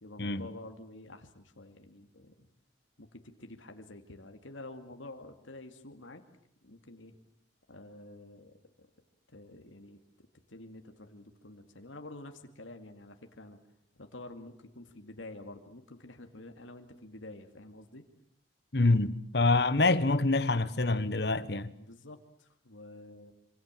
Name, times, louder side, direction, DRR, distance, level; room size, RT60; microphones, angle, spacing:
voice 1, 0.0-2.5 3.0-6.2 6.6-7.1 7.7-8.5 9.3-13.6 14.0-18.0 21.7-23.3, left 2 dB, 90° left, 2.5 m, -49 dB
voice 2, 18.7-21.7, left 2 dB, 55° left, 1.3 m, -26 dB
26.5 x 26.5 x 7.6 m
head